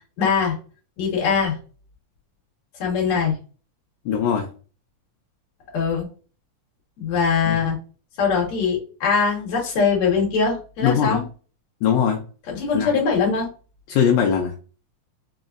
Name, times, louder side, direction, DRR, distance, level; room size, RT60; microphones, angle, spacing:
voice 1, 0.2-0.6 1.0-1.5 2.8-3.4 5.7-6.1 7.0-7.8 8.2-11.2 12.5-13.5, left 5 dB, 65° left, -1 dB, 2.3 m, -22 dB
voice 2, 4.1-4.5 7.5-7.6 10.8-11.2 11.8-12.2 12.7-12.9 13.9-14.5, left 8 dB, 80° left, 2 dB, 1.9 m, -20 dB
5.1 x 2.0 x 2.4 m, 0.37 s
omnidirectional pair, 3.6 m